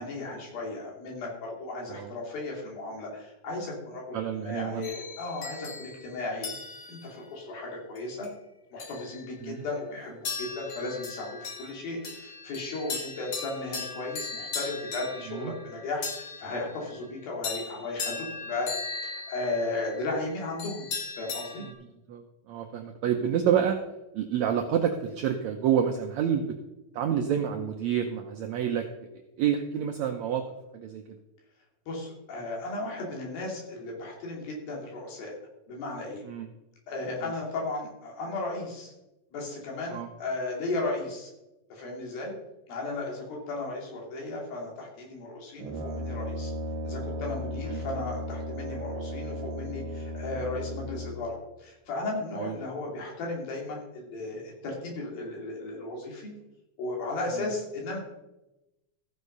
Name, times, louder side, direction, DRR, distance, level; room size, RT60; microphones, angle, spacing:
voice 1, 0.0-4.2 4.4-6.5 6.9-8.3 8.7-18.7 19.0-20.9 21.2-21.7 31.9-35.3 35.7-36.2 36.9-38.9 39.3-41.3 41.7-42.3 42.7-46.5 46.8-56.3 56.8-58.0, left 2 dB, 80° left, -1 dB, 4.5 m, -35 dB
voice 2, 4.1-4.9 9.4-9.6 15.3-15.5 22.1-23.8 24.1-26.6 26.9-28.8 29.4-30.4 30.7-31.0 36.2-36.5 39.9-40.1 47.6-47.8 52.4-52.6 57.4-57.5, right 9 dB, 80° right, 4 dB, 1.6 m, -28 dB
sound 1, 4.8-7.2 8.0-8.3 8.8-9.6 10.2-21.7, left 4 dB, 50° left, 2.0 m, -38 dB
Brass instrument, 45.6-51.4, left 1 dB, 60° right, 2.3 m, -35 dB
15.0 x 6.6 x 5.4 m, 0.95 s
omnidirectional pair, 4.1 m